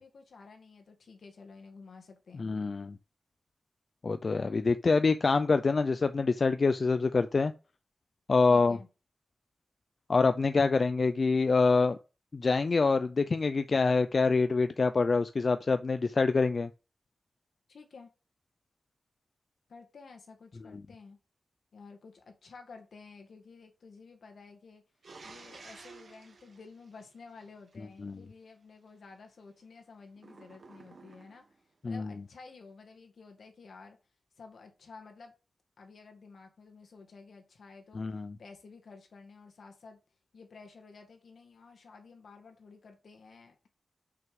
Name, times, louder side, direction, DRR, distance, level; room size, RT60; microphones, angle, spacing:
voice 1, 0.0-2.6 8.5-8.9 17.7-18.1 19.7-21.2 21.7-24.8 25.2-31.4 31.8-34.0 34.4-35.3 35.8-38.0 38.4-40.0 40.3-43.7, left 4 dB, 75° left, 1.9 m, -52 dB
voice 2, 2.4-3.0 4.0-7.5 8.3-8.8 10.1-12.0 12.3-16.7 20.7-20.8 27.8-28.2 31.8-32.1 37.9-38.4, left 4 dB, 50° left, 0.4 m, -26 dB
sound 1, 25.0-27.8 30.2-31.6, right 4 dB, 65° right, 1.4 m, -52 dB
6.1 x 5.9 x 5.2 m
wide cardioid pair, 110°, 0 cm